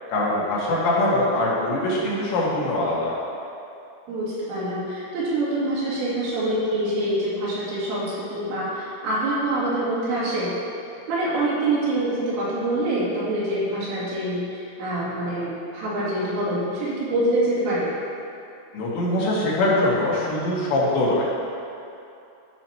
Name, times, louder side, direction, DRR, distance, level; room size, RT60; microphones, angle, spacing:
voice 1, 0.1-3.1 18.7-21.3, left 1 dB, 80° left, -6 dB, 4.2 m, -22 dB
voice 2, 4.1-10.5 11.1-17.9, right 1 dB, 85° right, -9 dB, 5.1 m, -25 dB
14.0 x 6.0 x 4.5 m, 2.7 s
omnidirectional pair, 5.0 m